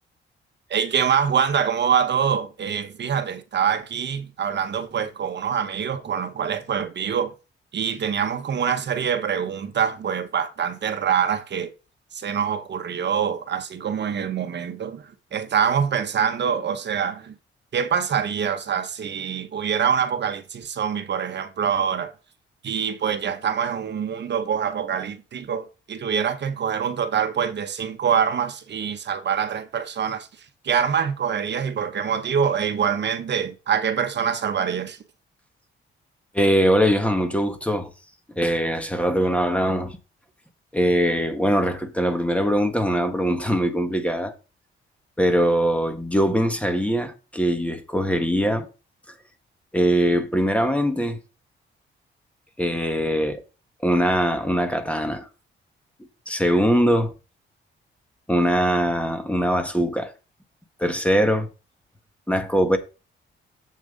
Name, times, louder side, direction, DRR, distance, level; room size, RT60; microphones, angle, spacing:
voice 1, 0.7-7.3 7.7-11.7 12.1-17.3 17.7-22.1 22.6-35.0, right 7 dB, 55° right, 1.0 m, -25 dB
voice 2, 36.3-37.9 38.4-40.0 40.7-44.3 45.2-48.7 49.7-51.2 52.6-53.4 53.8-55.3 56.3-57.1 58.3-60.1 60.8-61.5 62.3-62.8, equal, 5° left, 1.7 m, -22 dB
7.5 x 7.3 x 3.9 m
cardioid pair, 85°, 21 cm